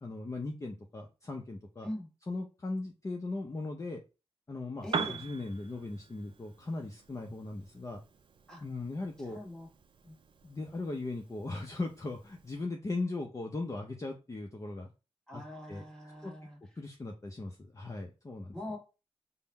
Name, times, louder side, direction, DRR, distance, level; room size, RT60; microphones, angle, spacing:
voice 1, 0.0-1.9 2.3-4.0 4.5-8.0 8.6-9.4 10.4-14.9 15.3-15.4 15.7-15.9 16.2-16.3 16.8-18.6, left 2 dB, 30° left, 0.6 m, -38 dB
voice 2, 4.8-5.2 8.5-8.6 9.2-9.7 10.0-10.2 15.3-16.6 18.5-18.8, left 1 dB, 5° left, 1.3 m, -43 dB
Piano, 4.8-12.6, right 5 dB, 50° right, 0.5 m, -43 dB
3.7 x 2.0 x 4.2 m
cardioid pair, 80°, 11 cm